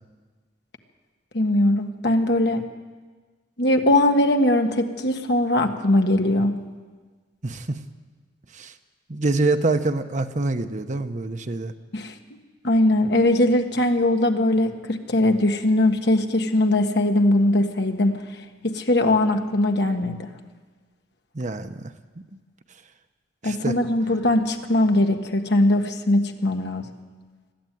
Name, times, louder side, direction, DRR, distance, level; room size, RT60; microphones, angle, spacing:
voice 1, 1.3-2.6 3.6-6.6 11.9-12.1 12.6-18.2 18.6-20.3 23.4-26.8, left 1 dB, 65° left, 5 dB, 1.6 m, -20 dB
voice 2, 7.4-7.8 8.5-8.7 9.1-11.7 21.3-21.9 23.4-23.8, right 2 dB, 45° right, 8 dB, 1.0 m, -25 dB
20.5 x 13.5 x 9.3 m, 1.4 s
head